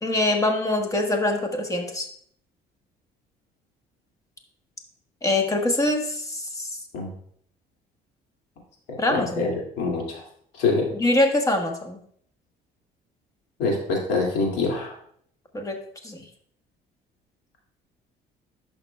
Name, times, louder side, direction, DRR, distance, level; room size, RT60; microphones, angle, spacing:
voice 1, 0.0-2.1 5.2-6.7 9.0-9.5 10.9-12.0 15.5-15.7 16.0-16.2, left 2 dB, 20° left, 3 dB, 1.3 m, -24 dB
voice 2, 9.1-9.5 9.8-10.2 10.6-10.9 13.6-14.9, left 3 dB, 85° left, -1 dB, 2.3 m, -24 dB
11.0 x 5.7 x 2.3 m, 0.64 s
cardioid pair, 110°, 17 cm